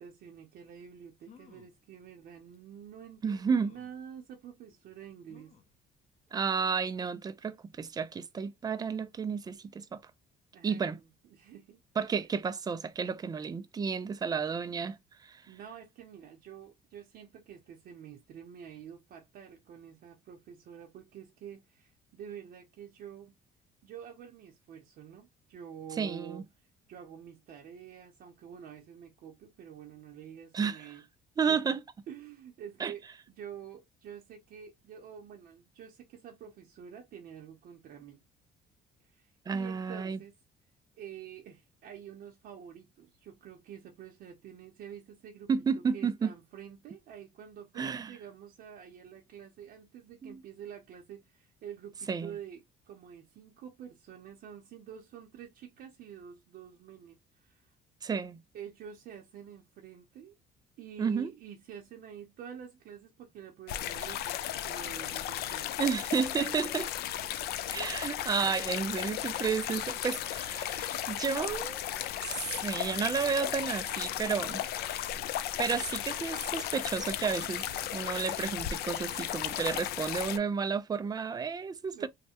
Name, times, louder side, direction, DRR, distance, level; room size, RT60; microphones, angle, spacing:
voice 1, 0.0-5.5 10.5-11.8 15.5-23.3 23.8-31.0 31.4-31.7 32.1-33.0 33.4-38.2 39.0-40.3 40.9-57.8 58.5-60.4 60.8-65.8 81.9-82.1, right 8 dB, 60° right, 0.6 m, -48 dB
sound 1, 0.8-0.9 1.2-1.8 2.5-2.6 3.5-4.0 5.3-5.8 6.3-6.4 6.7-6.8, left 6 dB, 40° left, 0.8 m, -57 dB
voice 2, 3.2-3.7 6.3-10.0 10.6-11.0 12.0-15.4 26.0-26.4 30.5-30.8 31.4-31.8 32.8-32.9 39.5-40.2 45.5-46.3 47.8-48.1 50.2-50.4 52.1-52.3 58.0-58.4 61.0-61.3 65.8-66.9 67.7-71.8 72.2-74.6 75.6-77.7 77.9-82.1, right 6 dB, 25° right, 0.4 m, -32 dB
sound 2, 63.7-80.4, left 12 dB, 70° left, 0.4 m, -35 dB
3.2 x 2.1 x 2.8 m
cardioid pair, 110°, 17 cm